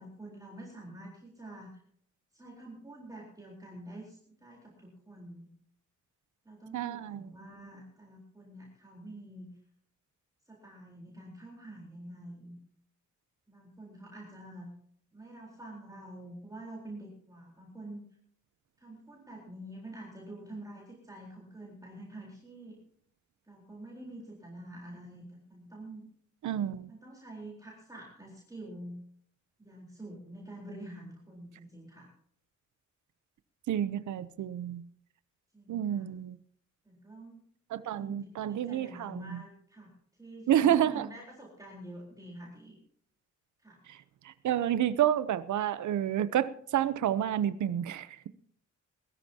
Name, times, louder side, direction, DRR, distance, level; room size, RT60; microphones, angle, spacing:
voice 1, 0.0-1.8 2.3-5.5 6.4-9.5 10.5-12.6 13.5-14.7 15.1-18.0 18.8-22.8 23.5-26.1 26.9-29.0 29.6-32.1 35.5-36.1 36.8-37.4 37.9-39.9 40.2-42.8 43.6-43.8, right 1 dB, 10° right, 4.1 m, -47 dB
voice 2, 6.7-7.3 26.4-26.9 33.7-34.9 35.7-36.4 37.7-39.4 40.5-41.1 43.9-48.3, right 10 dB, 75° right, 0.8 m, -29 dB
21.0 x 13.5 x 2.9 m
wide cardioid pair, 135°, 30 cm